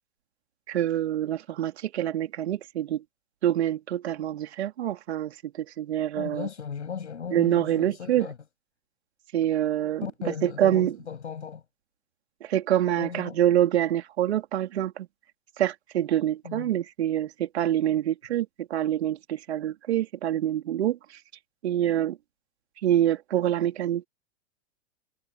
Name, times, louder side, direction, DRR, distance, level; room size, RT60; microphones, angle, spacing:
voice 1, 0.7-3.0 3.4-6.5 7.3-8.3 9.3-10.1 10.4-11.0 12.4-15.1 15.6-21.2 21.6-22.2 22.8-24.1, right 11 dB, 70° right, 3.6 m, -26 dB
voice 2, 6.2-8.4 10.0-11.6 13.0-13.4 16.4-16.7, left 7 dB, 80° left, 7.2 m, -36 dB
hypercardioid pair, 100°, 34 cm